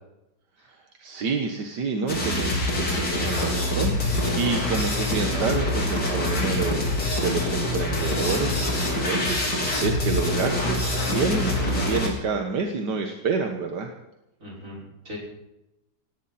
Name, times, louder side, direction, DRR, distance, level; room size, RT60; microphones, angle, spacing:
voice 1, 0.7-13.9, right 5 dB, 80° right, 4 dB, 1.9 m, -29 dB
sound 1, 2.1-12.1, left 1 dB, 75° left, 4.5 m, -25 dB
voice 2, 14.4-15.2, left 2 dB, 50° right, -3 dB, 6.2 m, -40 dB
18.5 x 17.5 x 4.2 m, 0.92 s
omnidirectional pair, 1.8 m